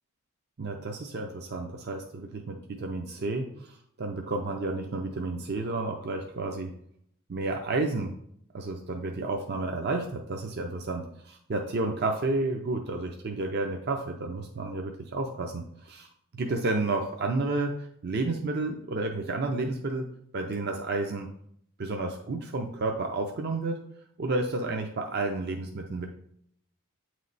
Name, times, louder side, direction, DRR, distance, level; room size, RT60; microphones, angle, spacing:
voice 1, 0.6-6.7 7.3-8.1 8.5-16.1 16.3-17.8 18.0-20.1 20.3-21.3 21.8-23.8 24.2-26.1, right 2 dB, 50° right, 3 dB, 0.5 m, -31 dB
8.5 x 3.2 x 4.0 m, 0.69 s
head